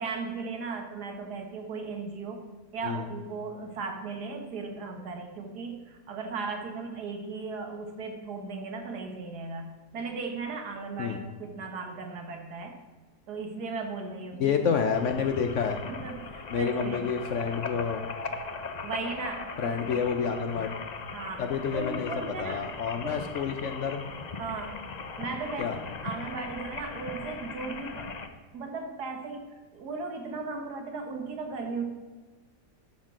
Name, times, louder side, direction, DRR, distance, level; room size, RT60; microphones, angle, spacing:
voice 1, 0.0-2.5 2.7-12.8 13.3-14.6 15.2-15.3 15.9-17.2 18.8-19.9 21.1-21.5 21.7-22.7 23.0-23.2 24.4-24.9 25.2-31.9, right 4 dB, 75° right, 4 dB, 1.8 m, -37 dB
voice 2, 14.4-15.8 16.5-18.1 19.6-20.7 21.4-22.1 22.4-24.0 25.6-25.8, left 6 dB, 60° left, 6 dB, 0.8 m, -29 dB
sound 1, 14.9-28.3, left 4 dB, 85° left, 0.3 m, -39 dB
12.0 x 4.3 x 6.0 m, 1.4 s
omnidirectional pair, 1.7 m